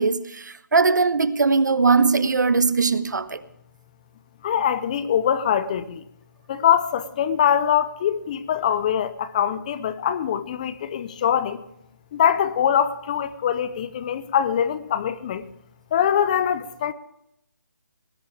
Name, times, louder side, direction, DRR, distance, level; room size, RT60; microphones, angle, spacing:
voice 1, 0.0-3.4, right 4 dB, 65° right, 1.2 m, -20 dB
voice 2, 4.4-6.0 6.5-11.6 12.1-15.5 15.9-16.9, left 9 dB, 25° left, 0.7 m, -23 dB
19.0 x 18.0 x 3.5 m
figure-of-eight pair, 160°, 10 cm